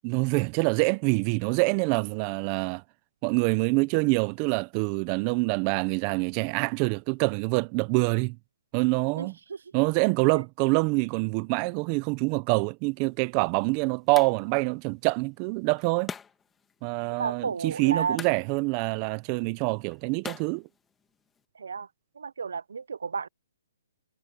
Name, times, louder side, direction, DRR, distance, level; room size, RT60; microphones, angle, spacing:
voice 1, 0.0-2.8 3.2-8.4 8.7-9.3 9.7-16.1 16.8-20.6, right 28 dB, 25° right, 0.5 m, -26 dB
voice 2, 9.2-9.6 10.3-10.4 17.2-18.2 21.5-21.9 22.2-23.3, right 6 dB, 80° right, 0.6 m, -32 dB
sound 1, 12.9-21.4, left 6 dB, 10° left, 1.6 m, -47 dB
hypercardioid pair, 165°, 0 cm